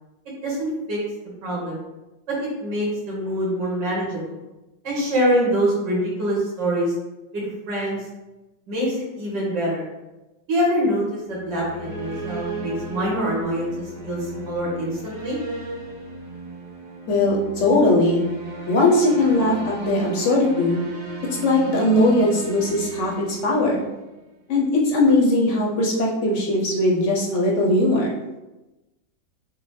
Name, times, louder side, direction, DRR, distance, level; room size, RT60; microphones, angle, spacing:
voice 1, 0.4-1.0 1.4-1.8 2.3-4.4 4.8-6.9 7.3-8.0 8.7-9.9 10.5-15.4, equal, 75° right, -5 dB, 2.0 m, -25 dB
sound 1, 11.3-24.1, right 2 dB, 40° right, 0.8 m, -36 dB
voice 2, 17.1-18.2 18.7-20.8 21.4-23.8 24.5-28.1, left 1 dB, 60° left, -2 dB, 0.8 m, -19 dB
6.0 x 2.1 x 3.2 m, 1.0 s
omnidirectional pair, 2.0 m